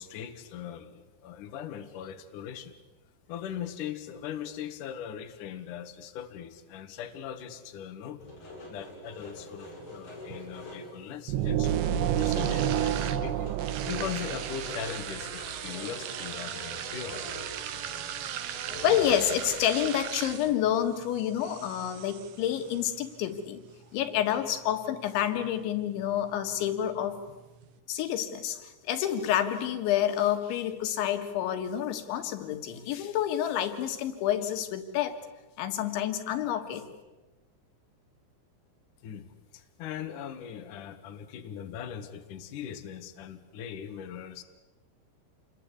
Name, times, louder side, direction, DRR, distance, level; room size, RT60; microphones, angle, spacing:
voice 1, 0.0-2.7 3.3-8.2 8.7-13.5 13.9-17.2 39.0-44.4, left 9 dB, 60° left, 6 dB, 2.5 m, -40 dB
sound 1, 8.2-11.0 11.4-11.5 11.8-12.6 12.9-19.4, left 1 dB, 40° left, 8.6 m, -45 dB
sound 2, 9.8-27.8, right 9 dB, 65° right, 2.2 m, -41 dB
sound 3, 11.3-15.1, right 10 dB, 80° right, 3.5 m, -29 dB
voice 2, 18.8-23.6 23.9-27.2 27.9-35.2 35.6-36.9, left 10 dB, 85° left, 7 dB, 3.9 m, -28 dB
27.5 x 22.0 x 8.4 m, 1.2 s
omnidirectional pair, 5.2 m